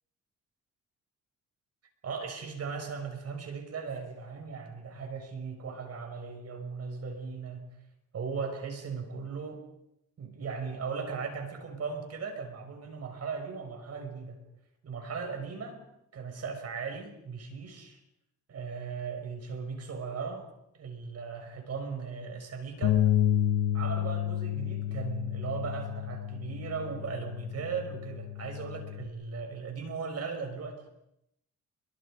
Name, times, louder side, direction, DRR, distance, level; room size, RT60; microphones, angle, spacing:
voice 1, 2.0-7.6 8.1-9.6 10.2-14.4 14.8-15.8 16.1-18.0 18.5-20.5 20.7-23.0 23.7-30.8, right 5 dB, 55° right, 5 dB, 5.9 m, -37 dB
Bass guitar, 22.8-29.1, left 11 dB, 80° left, 4.5 m, -30 dB
29.5 x 23.0 x 5.1 m, 0.82 s
cardioid pair, 90°, 30 cm